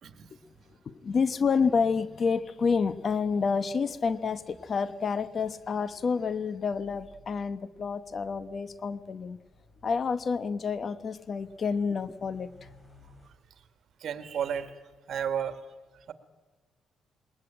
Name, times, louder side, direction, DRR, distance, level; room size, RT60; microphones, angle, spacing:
voice 1, 0.8-9.4 9.8-12.7, left 5 dB, 45° left, 13 dB, 1.0 m, -29 dB
sound 1, 4.0-13.3, left 1 dB, 20° left, 6.0 m, -60 dB
voice 2, 14.0-14.8 15.1-15.6 16.1-16.2, right 8 dB, 65° right, 9 dB, 2.0 m, -32 dB
21.0 x 20.0 x 8.9 m, 1.2 s
cardioid pair, 90°, 0 cm